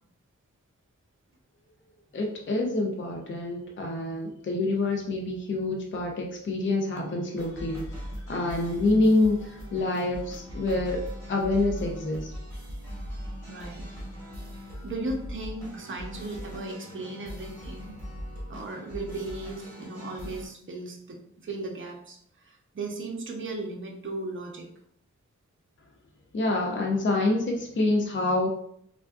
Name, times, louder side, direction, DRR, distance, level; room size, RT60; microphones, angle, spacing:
voice 1, 2.1-7.9 8.3-12.3 26.3-28.5, left 2 dB, 40° left, 0 dB, 0.5 m, -27 dB
sound 1, 7.4-20.5, equal, 10° left, 1.4 m, -40 dB
voice 2, 13.4-13.8 14.5-18.0 18.5-22.2 22.4-24.7, right 2 dB, 40° right, 0 dB, 0.6 m, -37 dB
3.5 x 2.4 x 2.3 m, 0.67 s
wide cardioid pair, 100°, 30 cm